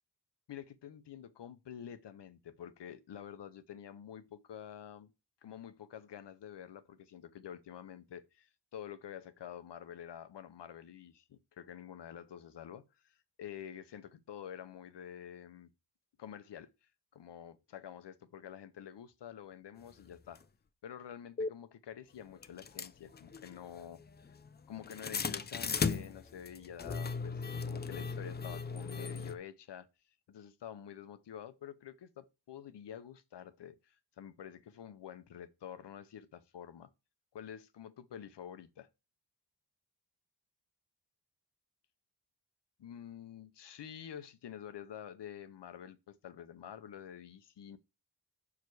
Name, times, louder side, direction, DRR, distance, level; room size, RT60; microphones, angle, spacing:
voice 1, 0.5-5.1 5.4-15.7 16.2-16.7 17.1-20.4 20.8-24.0 24.7-29.9 30.3-36.9 37.3-38.9 42.8-47.8, left 9 dB, 85° left, 0.8 m, -48 dB
sound 1, 20.3-20.4 21.4-21.5 22.4-29.3, left 5 dB, 25° left, 0.4 m, -37 dB
5.9 x 4.8 x 4.6 m
wide cardioid pair, 95°, 41 cm